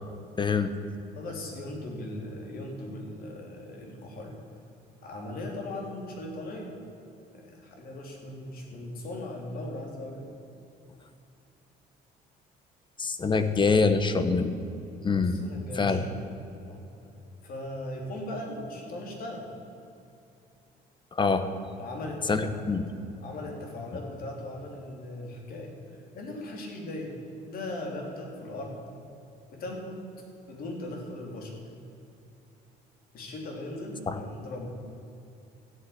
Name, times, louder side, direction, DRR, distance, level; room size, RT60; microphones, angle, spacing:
voice 1, 0.4-0.7 13.0-14.6 15.0-15.4 15.8-16.0 21.1-21.4 22.3-22.9 34.1-34.2, left 4 dB, 30° left, 10 dB, 1.2 m, -25 dB
voice 2, 1.1-4.4 5.0-6.7 7.3-10.3 15.2-16.3 16.6-16.8 17.4-19.5 21.8-22.7 23.2-27.1 27.5-28.8 29.5-30.1 30.5-31.5 33.1-34.7, left 1 dB, 60° left, 0 dB, 3.8 m, -38 dB
14.0 x 9.1 x 9.9 m, 2.7 s
cardioid pair, 110°, 17 cm